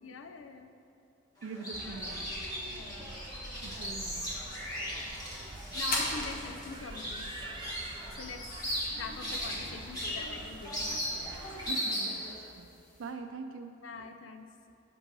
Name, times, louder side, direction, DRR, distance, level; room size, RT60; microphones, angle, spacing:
voice 1, 0.0-0.7 2.7-3.1 4.8-5.1 5.7-7.3 8.1-8.5 8.9-11.7 13.8-14.5, left 4 dB, 85° left, 7 dB, 0.5 m, -45 dB
sound 1, 1.4-12.3, equal, 20° left, 2.0 m, -37 dB
voice 2, 1.4-2.3 3.6-4.3 11.3-12.3 12.6-12.7 13.0-13.7, right 4 dB, 90° right, 6 dB, 0.4 m, -43 dB
sound 2, 1.7-11.7, right 2 dB, 25° right, 0.4 m, -47 dB
sound 3, 3.6-13.1, left 2 dB, 50° left, 1.2 m, -44 dB
6.2 x 5.4 x 6.1 m, 2.6 s
head